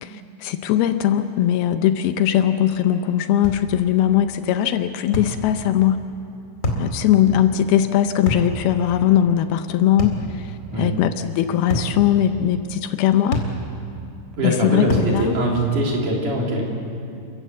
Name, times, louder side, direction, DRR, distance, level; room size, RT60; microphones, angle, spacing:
voice 1, 0.0-6.0 6.8-13.4 14.4-15.4, left 11 dB, 80° left, 9 dB, 2.6 m, -20 dB
sound 1, 3.4-3.7 5.1-5.4 6.6-6.9 8.3-8.5 10.0-10.2 11.7-11.9 13.3-13.6 14.9-15.1, left 1 dB, 25° left, 2.0 m, -24 dB
voice 2, 14.4-16.7, right 1 dB, 55° right, -2 dB, 4.6 m, -22 dB
29.0 x 14.5 x 8.2 m, 2.6 s
omnidirectional pair, 4.5 m